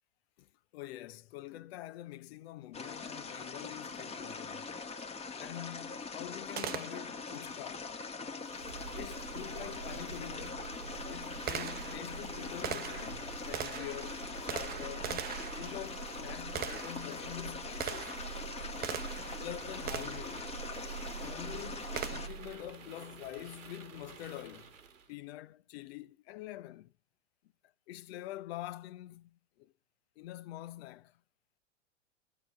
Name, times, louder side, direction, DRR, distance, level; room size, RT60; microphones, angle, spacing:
voice 1, 0.4-4.7 5.4-7.9 8.9-10.7 11.1-18.1 19.4-20.5 21.2-24.7 25.1-26.9 27.9-29.7 30.2-31.2, left 14 dB, 50° left, 0.9 m, -46 dB
sound 1, 2.7-22.3, left 4 dB, 15° left, 1.5 m, -43 dB
Gunshot gunfire, 6.6-7.4 9.7-9.8 10.5-19.4 19.9-20.3 22.0-22.5, right 9 dB, 25° right, 0.9 m, -41 dB
sound 2, 8.4-25.1, right 5 dB, 85° right, 1.7 m, -46 dB
15.0 x 6.7 x 9.8 m
hypercardioid pair, 100°, 38 cm